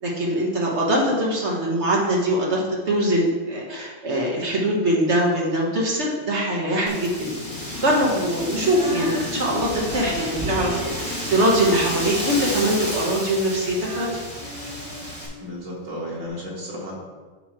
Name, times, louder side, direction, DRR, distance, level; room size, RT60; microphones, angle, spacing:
voice 1, 0.0-7.3 7.8-14.2, right 1 dB, 60° right, -2 dB, 1.5 m, -22 dB
Wind, 6.9-15.3, equal, 10° left, 1.7 m, -33 dB
sound 1, 7.2-12.7, left 3 dB, 55° left, 0.9 m, -37 dB
Female singing, 8.6-15.6 16.3-16.4, equal, 25° right, 1.4 m, -34 dB
voice 2, 15.4-16.9, equal, 90° right, -5 dB, 2.3 m, -33 dB
8.4 x 3.1 x 5.9 m, 1.4 s
omnidirectional pair, 1.3 m